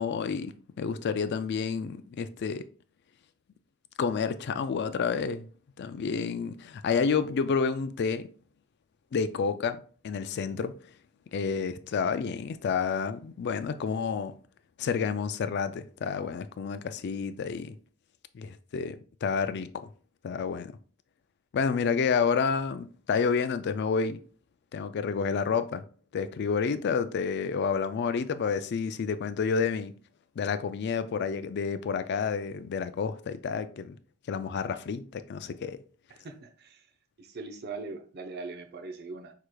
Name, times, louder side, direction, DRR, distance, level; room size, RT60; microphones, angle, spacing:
voice 1, 0.0-2.7 4.0-5.5 5.8-8.3 9.1-10.8 11.3-14.3 14.8-17.7 18.3-19.9 20.2-20.8 21.5-24.2 24.7-25.8 26.1-29.9 30.4-34.0 34.3-35.8, left 5 dB, 55° left, 0.3 m, -29 dB
voice 2, 36.1-36.8 37.2-39.3, right 3 dB, 50° right, 0.6 m, -41 dB
4.8 x 4.6 x 2.3 m
head